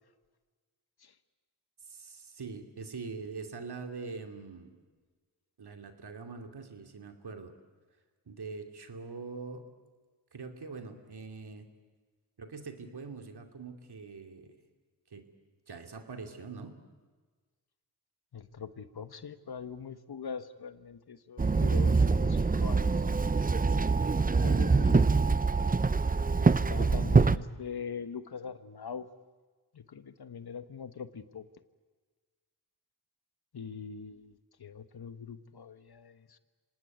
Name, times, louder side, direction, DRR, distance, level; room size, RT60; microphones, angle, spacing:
voice 1, 1.9-4.7 5.6-7.5 8.3-9.6 10.3-11.7 12.4-14.6 15.1-15.2 15.7-16.7, right 4 dB, 65° right, 6 dB, 2.8 m, -43 dB
voice 2, 18.3-22.9 24.4-25.1 26.7-29.1 29.7-31.4 33.5-36.4, left 6 dB, 65° left, 12 dB, 1.3 m, -42 dB
Walk footsteps / Chatter / Hiss, 21.4-27.4, right 4 dB, 20° right, 0.7 m, -24 dB
25.5 x 18.5 x 9.4 m, 1.4 s
cardioid pair, 45°, 41 cm